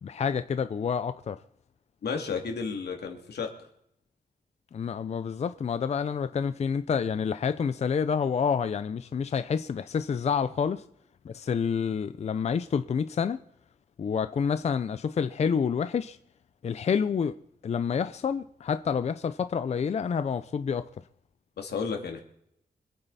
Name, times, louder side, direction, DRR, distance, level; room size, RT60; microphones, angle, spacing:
voice 1, 0.0-1.4 4.7-10.8 11.2-13.4 14.0-16.2 16.6-17.3 17.6-20.9, left 6 dB, 40° left, 0.5 m, -28 dB
voice 2, 2.0-3.5 21.6-22.2, left 5 dB, 90° left, 2.5 m, -32 dB
25.5 x 9.0 x 4.1 m
wide cardioid pair, 175°, 17 cm